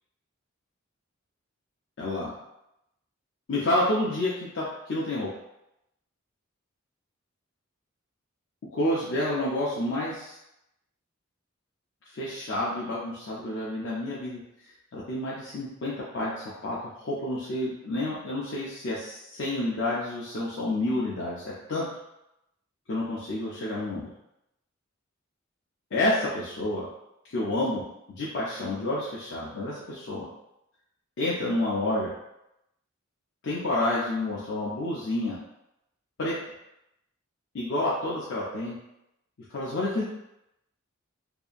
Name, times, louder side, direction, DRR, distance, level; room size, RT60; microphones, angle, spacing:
voice 1, 2.0-2.3 3.5-5.3 8.7-10.4 12.1-14.4 14.9-21.8 22.9-24.1 25.9-26.9 27.3-27.8 28.1-30.3 31.2-32.1 33.4-35.4 36.2-36.3 37.5-38.7 39.5-40.0, left 1 dB, 60° left, -6 dB, 0.5 m, -29 dB
2.7 x 2.5 x 2.4 m, 0.85 s
head